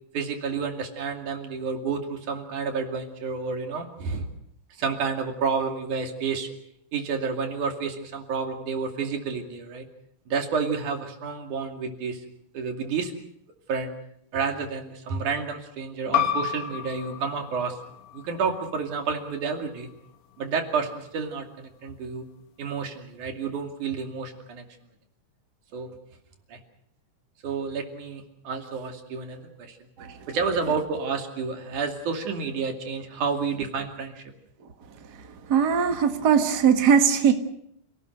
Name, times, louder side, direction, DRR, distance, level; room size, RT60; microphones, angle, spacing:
voice 1, 0.1-4.3 4.8-6.5 6.9-9.9 10.3-12.2 12.5-13.1 13.7-13.9 14.3-17.8 18.1-19.9 20.4-22.2 22.6-24.7 25.7-25.9 26.5-26.6 27.4-29.8 30.3-34.2, right 5 dB, 85° right, 3 dB, 4.0 m, -30 dB
sound 1, 16.1-21.3, left 9 dB, 65° left, 2.6 m, -32 dB
voice 2, 35.5-37.3, right 7 dB, 40° right, 5 dB, 1.9 m, -20 dB
28.0 x 18.0 x 6.5 m, 0.73 s
omnidirectional pair, 3.4 m